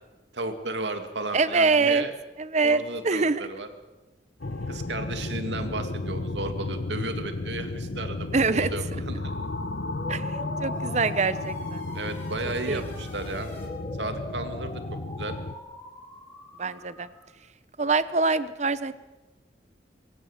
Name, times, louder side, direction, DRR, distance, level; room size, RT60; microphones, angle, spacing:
voice 1, 0.3-2.1 2.6-3.7 4.7-9.3 11.9-13.5 14.0-14.8 15.2-15.4, right 2 dB, 80° right, 7 dB, 2.4 m, -34 dB
voice 2, 1.3-2.0 2.4-3.5 8.3-8.7 10.1-11.8 12.7-12.8 16.6-17.1 17.8-18.9, right 4 dB, 40° right, 14 dB, 0.9 m, -24 dB
sound 1, 4.4-15.5, left 2 dB, 75° left, 1.0 m, -33 dB
sound 2, 9.8-17.3, left 1 dB, 10° left, 5.1 m, -44 dB
24.0 x 16.0 x 7.3 m, 1.1 s
head